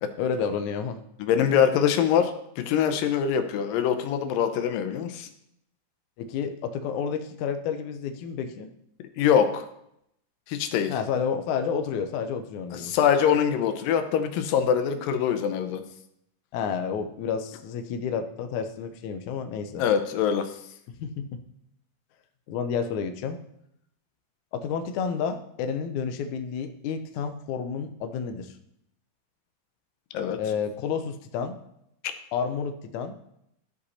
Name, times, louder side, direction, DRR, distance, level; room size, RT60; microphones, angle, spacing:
voice 1, 0.2-1.0 6.2-8.7 10.9-12.9 16.5-19.8 21.0-21.4 22.5-23.4 24.5-28.5 30.4-31.6 32.3-33.2, left 6 dB, 75° left, 7 dB, 2.0 m, -30 dB
voice 2, 1.2-5.3 9.2-9.7 10.5-10.9 12.7-15.8 19.8-20.6 30.1-30.4, left 8 dB, 90° left, 8 dB, 2.5 m, -24 dB
13.5 x 5.3 x 4.2 m, 0.76 s
omnidirectional pair, 3.9 m